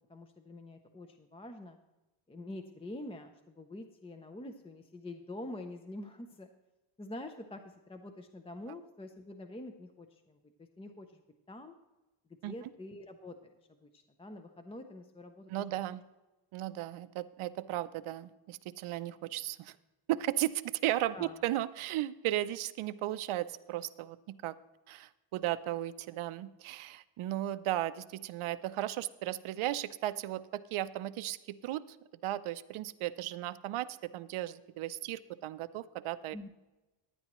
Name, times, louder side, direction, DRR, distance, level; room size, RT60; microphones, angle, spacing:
voice 1, 0.1-1.8 2.3-6.5 7.0-11.2 11.5-11.8 12.4-13.5 13.8-15.5 21.1-21.4 36.3-36.5, left 1 dB, 10° left, 7 dB, 0.5 m, -46 dB
voice 2, 15.5-16.0 16.5-19.8 20.1-24.5 24.9-31.8 32.2-36.4, right 14 dB, 75° right, 13 dB, 0.6 m, -35 dB
15.5 x 10.0 x 3.0 m, 1.1 s
cardioid pair, 165°, 49 cm